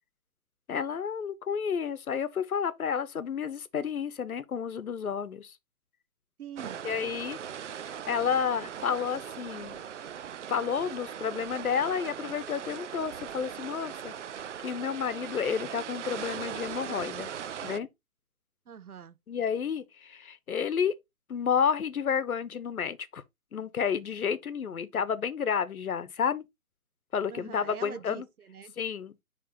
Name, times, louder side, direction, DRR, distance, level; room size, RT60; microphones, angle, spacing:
voice 1, 0.7-5.6 6.8-7.4 7.8-9.8 10.5-14.1 14.6-17.3 17.6-17.9 19.3-20.9 21.3-23.2 23.5-26.4 27.1-28.3 28.8-29.2, left 7 dB, 70° left, 1.0 m, -31 dB
voice 2, 6.4-6.9 18.7-19.2 27.3-28.7, right 8 dB, 80° right, 0.9 m, -44 dB
sound 1, 6.6-17.8, right 8 dB, 55° right, 0.5 m, -39 dB
9.6 x 3.4 x 2.9 m
hypercardioid pair, 150°, 44 cm